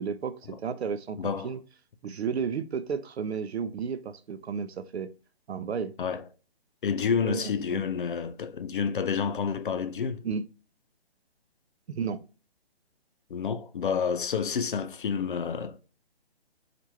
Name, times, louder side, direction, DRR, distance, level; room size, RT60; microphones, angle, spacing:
voice 1, 0.0-1.6 2.0-5.1 5.5-5.9 7.2-7.8 10.2-10.4 11.9-12.2, right 6 dB, 80° right, 0.5 m, -33 dB
voice 2, 1.2-1.5 6.0-6.2 6.8-10.2 13.3-15.8, left 6 dB, 55° left, 0.5 m, -29 dB
4.3 x 2.5 x 2.9 m
hypercardioid pair, 150°, 32 cm